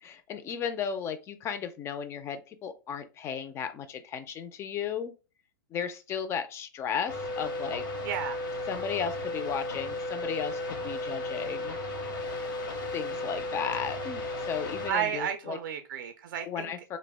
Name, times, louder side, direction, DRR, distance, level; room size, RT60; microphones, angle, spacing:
voice 1, 0.0-5.1 5.7-7.8 8.7-11.8 12.9-15.6 16.4-17.0, left 7 dB, 25° left, 0.3 m, -35 dB
sound 1, 7.1-14.9, left 2 dB, 85° left, 0.8 m, -34 dB
voice 2, 8.0-8.4 14.9-16.7, right 9 dB, 70° right, 0.4 m, -32 dB
2.3 x 2.0 x 3.3 m
hypercardioid pair, 130°, 11 cm